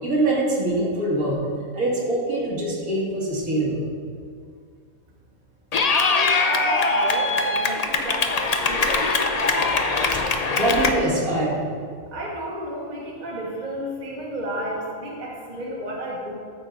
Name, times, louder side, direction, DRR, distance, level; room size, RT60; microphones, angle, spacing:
voice 1, 0.0-1.4 1.7-3.8 10.6-11.7, right 1 dB, 65° right, -5 dB, 2.3 m, -23 dB
Clapping / Cheering, 5.7-10.9, left 3 dB, 60° left, 0.4 m, -22 dB
voice 2, 5.9-9.0 12.1-16.3, right 1 dB, 30° right, -3 dB, 1.3 m, -32 dB
14.5 x 8.4 x 2.6 m, 2.1 s
omnidirectional pair, 1.6 m